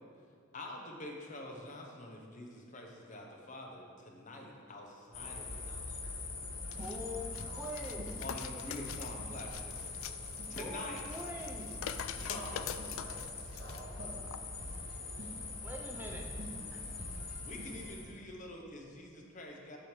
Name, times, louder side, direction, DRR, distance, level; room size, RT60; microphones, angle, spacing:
voice 1, 0.5-6.1 8.2-9.9 10.5-11.0 12.2-12.7 17.4-19.8, left 1 dB, 40° left, 0 dB, 0.9 m, -46 dB
sound 1, 5.1-18.0, left 3 dB, 60° left, 1.1 m, -43 dB
sound 2, 6.5-18.0, equal, 85° right, 1.8 m, -50 dB
sound 3, 6.7-13.8 14.3-14.4, left 9 dB, 80° left, 0.3 m, -45 dB
voice 2, 6.8-8.2 10.5-11.8 15.6-16.3 16.7-16.8, equal, 10° right, -1 dB, 0.6 m, -44 dB
voice 3, 7.4-8.0 10.3-11.0 12.3-14.4, equal, 55° right, -3 dB, 1.3 m, -52 dB
7.5 x 6.9 x 3.3 m, 2.2 s
head